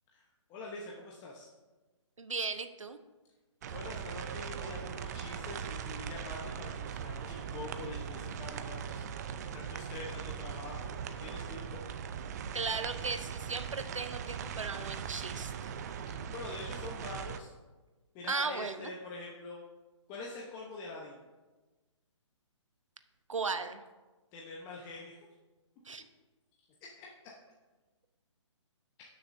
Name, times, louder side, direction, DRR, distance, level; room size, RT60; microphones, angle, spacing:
voice 1, 0.5-1.5 3.7-9.0 9.5-11.8 16.1-17.5 18.1-19.6 20.1-21.2 24.3-25.3 27.0-27.1, left 3 dB, 20° left, -3 dB, 1.0 m, -45 dB
voice 2, 2.2-3.0 12.5-15.7 18.3-18.9 23.3-23.8 25.9-26.0, right 4 dB, 85° right, 9 dB, 0.8 m, -36 dB
sound 1, 3.6-17.4, right 7 dB, 35° right, 0.5 m, -40 dB
16.5 x 6.5 x 2.7 m, 1.2 s
figure-of-eight pair, 140°, 16 cm